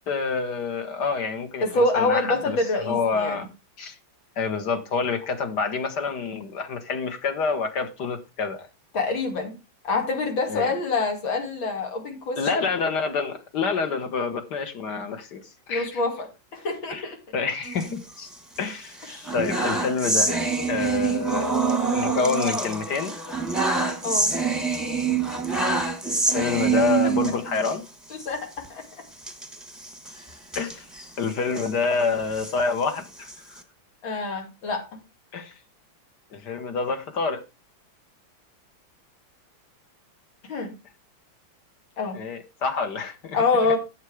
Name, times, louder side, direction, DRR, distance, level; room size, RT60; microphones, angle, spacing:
voice 1, 0.1-3.5 3.8-4.0 4.4-8.7 10.5-10.7 12.4-16.0 16.9-17.1 17.3-18.3 18.6-20.4 20.7-21.5 21.9-23.2 26.1-27.8 30.6-30.9 31.2-33.6 35.3-35.6 36.3-37.4 42.1-43.8, left 5 dB, 60° left, 8 dB, 1.9 m, -27 dB
voice 2, 1.6-3.5 8.9-9.6 9.9-12.4 15.7-16.3 16.5-17.2 19.1-19.3 24.0-24.3 28.3-28.8 34.0-34.8 40.5-40.7 42.0-42.2 43.3-43.8, left 3 dB, 85° left, 3 dB, 3.1 m, -26 dB
sound 1, 17.6-18.6 19.0-27.8 28.1-28.3 28.5-28.7 29.2-31.7 32.2-33.6, right 4 dB, ahead, 0.9 m, -26 dB
8.2 x 7.6 x 4.8 m, 0.28 s
omnidirectional pair, 2.1 m